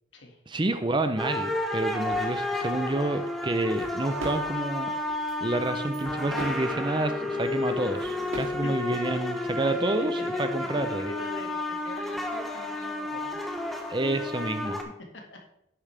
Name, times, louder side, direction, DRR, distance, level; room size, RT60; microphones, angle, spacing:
voice 1, 0.5-4.9 5.4-11.1 13.9-14.8, right 2 dB, 25° right, 9 dB, 0.5 m, -29 dB
sound 1, 1.2-14.8, left 2 dB, ahead, 0.9 m, -31 dB
sound 2, 1.7-1.8 2.1-2.3 2.6-2.8 3.4-4.7 5.1-5.4 5.6-6.7 7.4-8.7, right 1 dB, 85° right, 3.0 m, -41 dB
voice 2, 9.5-13.4 15.1-15.4, left 2 dB, 65° left, 1 dB, 2.0 m, -43 dB
10.5 x 8.7 x 3.4 m, 0.80 s
head